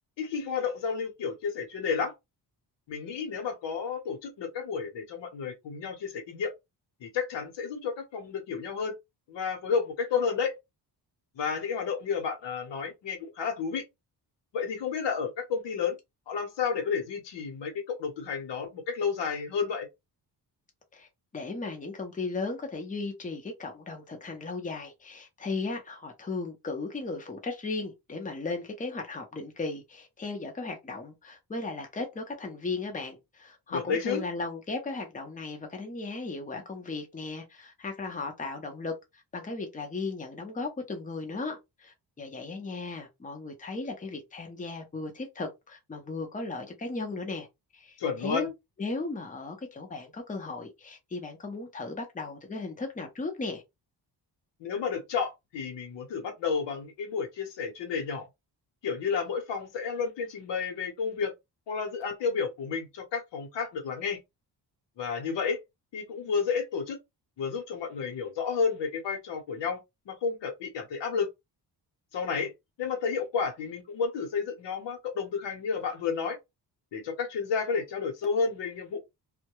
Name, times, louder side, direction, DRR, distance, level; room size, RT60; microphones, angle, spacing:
voice 1, 0.2-2.1 2.9-6.5 7.0-8.9 9.3-10.5 11.4-13.8 14.5-16.0 16.3-19.9 33.7-34.2 48.0-48.5 54.6-58.3 58.8-61.3 61.7-64.2 65.0-65.6 65.9-67.0 67.4-69.8 70.1-71.3 72.1-72.5 72.8-76.4 76.9-79.0, left 5 dB, 85° left, 1.0 m, -31 dB
voice 2, 21.3-47.5 47.7-48.5 48.8-53.6, left 3 dB, 20° left, 0.7 m, -36 dB
2.2 x 2.2 x 2.9 m
wide cardioid pair, 145°, 42 cm